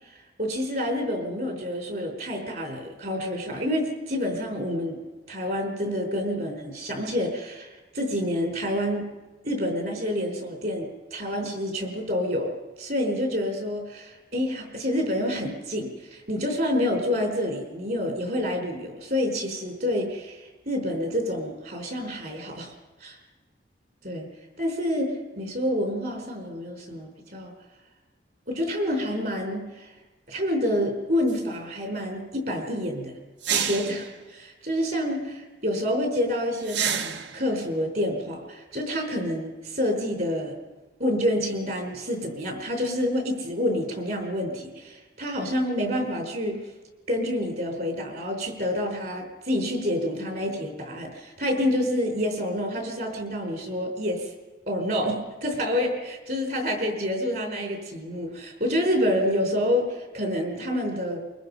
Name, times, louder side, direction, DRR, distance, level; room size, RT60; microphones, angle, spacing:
voice 1, 0.4-5.0 5.3-9.1 9.4-12.5 12.8-22.7 23.0-23.2 24.0-24.3 24.6-27.5 28.5-29.9 30.3-33.1 33.5-40.6 41.0-46.6 47.1-54.2 54.7-61.2, equal, 60° right, 4 dB, 4.5 m, -28 dB
sound 1, 31.3-31.4 33.4-34.1 36.6-37.4, right 7 dB, 85° right, 1.1 m, -28 dB
23.5 x 22.5 x 5.6 m, 1.2 s
head